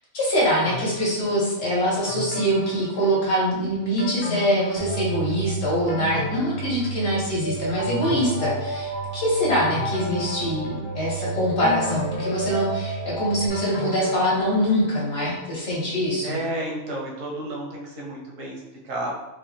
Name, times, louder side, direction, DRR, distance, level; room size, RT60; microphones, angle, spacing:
voice 1, 0.1-16.4, equal, 60° left, -5 dB, 1.2 m, -24 dB
sound 1, 0.6-1.5 2.1-3.5 4.0-5.3 5.6-7.3 7.8-9.1 9.7-11.1 11.6-14.8 15.2-15.3, left 3 dB, 80° left, 1.0 m, -35 dB
sound 2, 4.8-13.5, right 3 dB, 35° left, 0.5 m, -31 dB
voice 2, 16.2-19.1, right 1 dB, 85° right, -3 dB, 1.2 m, -32 dB
3.4 x 2.0 x 2.6 m, 0.97 s
omnidirectional pair, 1.3 m